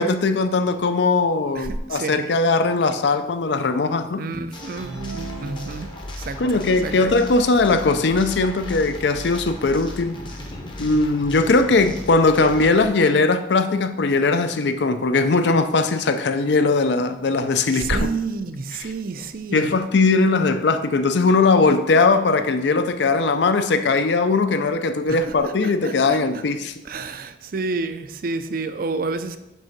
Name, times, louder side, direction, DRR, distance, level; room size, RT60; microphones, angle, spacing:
voice 1, 0.0-4.3 6.4-10.2 10.8-18.1 19.5-26.7, left 3 dB, 65° left, 10 dB, 0.5 m, -19 dB
voice 2, 1.5-2.2 4.2-7.2 17.7-19.9 25.1-26.4 26.8-29.4, right 3 dB, 50° right, 10 dB, 0.4 m, -30 dB
sound 1, 4.5-12.9, left 1 dB, 25° left, 0.7 m, -36 dB
sound 2, 4.8-6.4, right 4 dB, 75° right, 1.5 m, -36 dB
5.4 x 3.7 x 5.8 m, 0.90 s
head